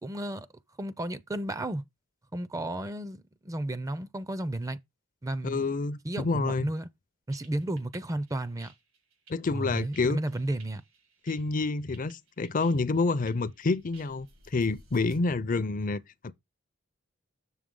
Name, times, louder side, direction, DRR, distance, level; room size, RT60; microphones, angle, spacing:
voice 1, 0.0-0.5 0.8-1.8 2.3-4.8 5.2-5.6 6.0-6.9 7.3-8.7 9.5-10.8, right 1 dB, 15° right, 0.4 m, -33 dB
voice 2, 5.4-6.7 9.3-10.2 11.2-16.3, left 3 dB, 40° left, 0.5 m, -28 dB
sound 1, 7.3-15.2, right 3 dB, 80° right, 2.4 m, -56 dB
7.4 x 6.3 x 3.7 m
head